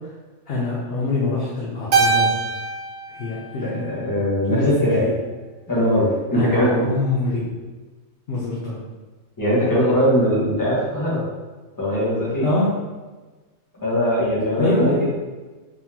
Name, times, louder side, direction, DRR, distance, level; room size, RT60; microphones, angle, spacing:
voice 1, 0.5-2.3 3.1-3.9 4.5-5.1 6.3-7.6 8.3-8.8 12.4-12.7 14.6-15.1, left 2 dB, 50° left, -5 dB, 0.8 m, -24 dB
Keyboard (musical), 1.9-4.4, right 4 dB, 70° right, 0.5 m, -23 dB
voice 2, 3.7-5.1 5.7-6.9 9.4-11.2 11.8-12.4 13.8-15.1, equal, 15° left, -7 dB, 1.3 m, -21 dB
4.1 x 3.7 x 2.8 m, 1.3 s
omnidirectional pair, 1.5 m